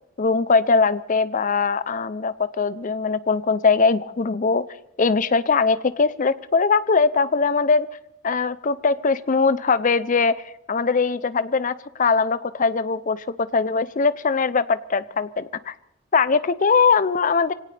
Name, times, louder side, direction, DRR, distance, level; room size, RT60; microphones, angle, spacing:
voice 1, 0.2-4.6 5.0-7.9 8.2-10.3 10.7-13.2 13.5-15.7 16.1-17.5, left 4 dB, 35° left, 15 dB, 0.5 m, -21 dB
24.5 x 17.5 x 3.4 m, 0.86 s
head